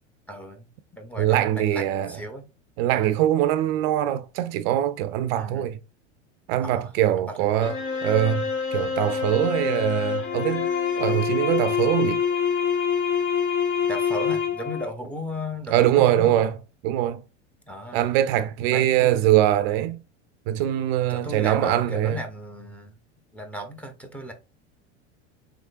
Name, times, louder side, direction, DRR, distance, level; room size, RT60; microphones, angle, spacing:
voice 1, 0.3-2.4 5.3-5.7 6.6-6.9 7.2-7.4 13.9-16.4 17.7-18.1 18.6-19.3 21.1-22.9 23.3-24.3, left 1 dB, 5° left, 0.7 m, -36 dB
voice 2, 1.2-2.2 2.8-5.8 6.5-7.7 8.0-10.7 11.0-12.2 15.7-16.5 16.8-17.2 17.9-20.0 20.5-22.2, right 12 dB, 55° right, 0.5 m, -22 dB
sound 1, 7.6-14.9, left 6 dB, 35° left, 1.8 m, -26 dB
3.6 x 3.3 x 2.5 m
hypercardioid pair, 90°, 35 cm